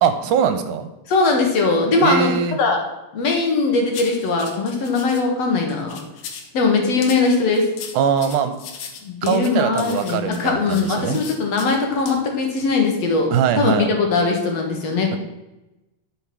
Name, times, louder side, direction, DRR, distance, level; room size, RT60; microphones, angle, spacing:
voice 1, 0.0-0.9 2.0-2.6 7.9-8.5 9.2-11.2 13.3-13.9, right 7 dB, 75° right, 9 dB, 2.2 m, -21 dB
voice 2, 1.1-2.8 3.1-6.0 6.5-7.7 9.0-15.2, left 3 dB, 60° left, 2 dB, 2.6 m, -20 dB
sound 1, 3.9-5.2 5.7-6.5 7.0-11.7 12.1-12.2 12.6-12.7, left 6 dB, 85° left, 2.8 m, -37 dB
11.5 x 6.2 x 6.1 m, 0.99 s
omnidirectional pair, 3.7 m